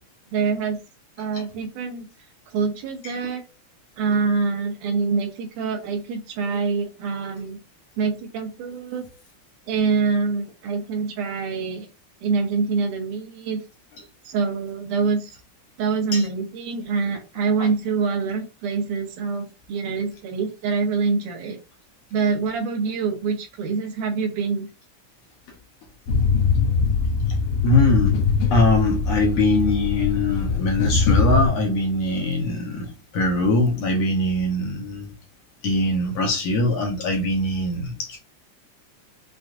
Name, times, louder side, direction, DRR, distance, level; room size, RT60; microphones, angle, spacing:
voice 1, 0.3-0.8 1.2-2.1 2.5-3.4 4.0-7.6 8.0-9.1 9.7-11.9 12.2-13.6 14.3-15.4 15.8-21.6 22.1-24.7, right 5 dB, 85° right, 2.4 m, -25 dB
sound 1, 26.1-31.5, left 4 dB, 85° left, 2.3 m, -22 dB
voice 2, 27.6-28.2 28.5-35.1 35.6-38.2, left 2 dB, 65° left, 1.9 m, -22 dB
6.2 x 2.5 x 2.4 m
omnidirectional pair, 3.5 m